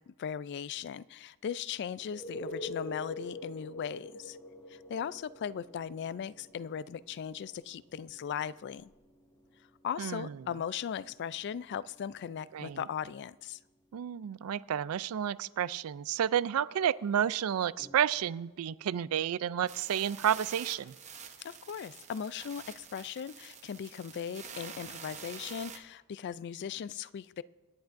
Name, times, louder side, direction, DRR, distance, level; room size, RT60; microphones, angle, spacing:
voice 1, 0.0-4.4 4.7-8.9 9.8-13.6 21.4-27.4, left 8 dB, 50° left, 18 dB, 0.3 m, -38 dB
sound 1, 2.0-13.5 17.8-17.9, left 2 dB, 15° left, 2.1 m, -47 dB
voice 2, 10.0-10.3 12.5-12.8 13.9-20.9, right 9 dB, 75° right, 18 dB, 0.4 m, -31 dB
sound 2, 19.7-25.8, right 6 dB, 30° right, 0.9 m, -47 dB
27.5 x 10.5 x 2.6 m, 1.2 s
head